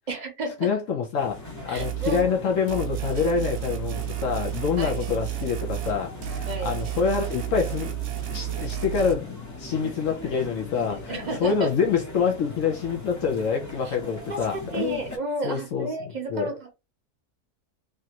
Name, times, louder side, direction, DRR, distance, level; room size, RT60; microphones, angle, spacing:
voice 1, 0.1-0.7 1.7-2.3 4.8-4.9 6.5-6.8 10.9-11.7 13.8-13.9 14.3-16.8, right 1 dB, 40° right, 0.7 m, -32 dB
voice 2, 0.6-1.4 1.7-7.9 8.3-15.0 15.4-16.5, left 6 dB, 65° left, 1.0 m, -26 dB
sound 1, 1.1-15.2, left 2 dB, 15° left, 0.6 m, -40 dB
sound 2, 1.8-2.3 2.7-6.0 6.2-9.1, right 14 dB, 85° right, 1.1 m, -32 dB
3.3 x 2.5 x 2.8 m
omnidirectional pair, 1.5 m